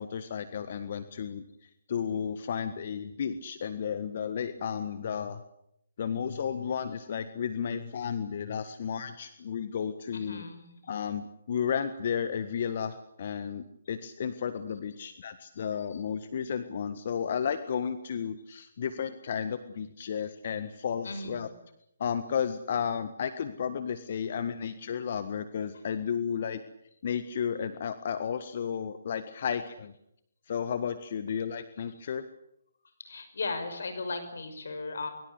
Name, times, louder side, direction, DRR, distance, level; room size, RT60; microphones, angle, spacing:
voice 1, 0.0-5.4 6.0-10.4 10.9-21.5 22.0-26.6 27.0-29.9 30.5-32.3, left 7 dB, 50° left, 11 dB, 1.6 m, -33 dB
voice 2, 10.1-10.7 21.0-21.5 33.0-35.1, left 3 dB, 65° left, 9 dB, 5.9 m, -36 dB
24.0 x 23.5 x 8.2 m, 0.76 s
figure-of-eight pair, 145°, 0 cm